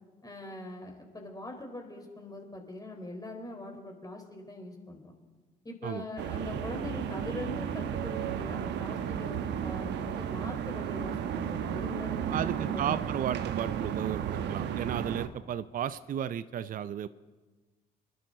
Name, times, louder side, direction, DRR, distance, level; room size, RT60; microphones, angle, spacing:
voice 1, 0.2-5.2 5.6-13.0 15.1-15.2, left 2 dB, 20° left, 3 dB, 4.1 m, -42 dB
sound 1, 6.2-15.3, right 9 dB, 65° right, 1.0 m, -33 dB
voice 2, 12.3-17.1, right 9 dB, 45° right, 15 dB, 0.6 m, -34 dB
25.5 x 11.5 x 3.9 m, 1.3 s
hypercardioid pair, 50°, 20 cm